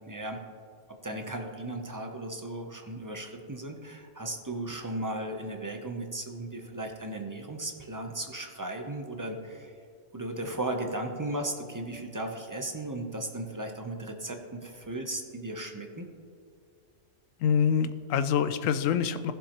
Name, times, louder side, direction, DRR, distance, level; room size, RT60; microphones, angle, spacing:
voice 1, 0.1-0.4 1.0-9.7 10.1-16.1, right 1 dB, 25° right, 4 dB, 0.4 m, -36 dB
voice 2, 17.4-19.3, left 7 dB, 80° left, 11 dB, 1.0 m, -25 dB
15.5 x 7.2 x 2.9 m, 2.2 s
omnidirectional pair, 1.3 m